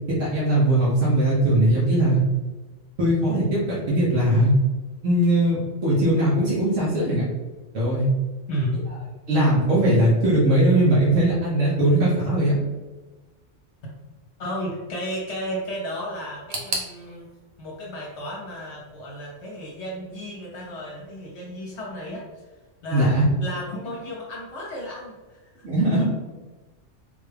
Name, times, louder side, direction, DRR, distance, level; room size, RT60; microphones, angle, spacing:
voice 1, 0.1-2.2 3.0-4.5 5.0-7.2 7.7-8.1 9.3-12.6 22.9-23.2 25.6-26.0, right 1 dB, 80° right, -7 dB, 1.3 m, -20 dB
voice 2, 8.5-8.8 14.4-17.3 17.6-22.5 22.8-23.1 23.4-25.4 25.9-26.0, equal, 65° left, -3 dB, 1.0 m, -33 dB
sound 1, 16.5-19.4 19.6-20.4 20.7-20.8 21.7-21.8, right 2 dB, 50° right, 0.5 m, -36 dB
3.7 x 2.2 x 3.3 m, 1.2 s
omnidirectional pair, 1.3 m